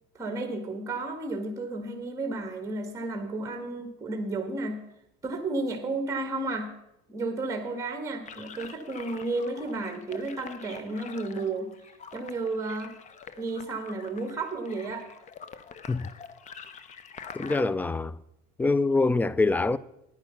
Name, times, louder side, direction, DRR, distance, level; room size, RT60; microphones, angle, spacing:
voice 1, 0.2-4.8 5.2-6.7 7.1-11.7 12.1-12.9 13.4-15.1, right 2 dB, 15° right, 1.8 m, -32 dB
sound 1, 8.3-17.7, left 6 dB, 35° left, 0.9 m, -46 dB
voice 2, 17.3-18.2 18.6-19.8, left 3 dB, 10° left, 0.4 m, -24 dB
9.8 x 9.7 x 5.7 m
supercardioid pair, 105°, 20 cm